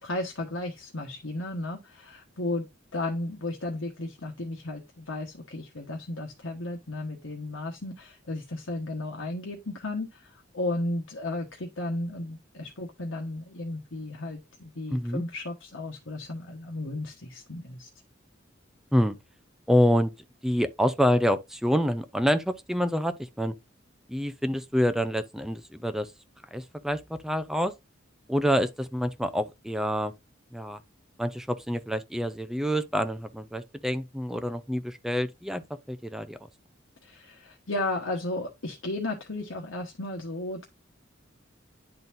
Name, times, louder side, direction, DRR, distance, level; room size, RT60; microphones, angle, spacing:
voice 1, 0.0-2.6 2.9-17.9 37.0-40.7, left 2 dB, 85° left, 1.2 m, -34 dB
voice 2, 14.9-15.2 18.9-19.2 19.7-20.1 20.4-23.5 24.1-26.1 26.5-27.7 28.3-30.1 30.5-30.8 31.2-35.6 35.9-36.4, equal, ahead, 0.6 m, -27 dB
10.5 x 4.0 x 2.6 m
head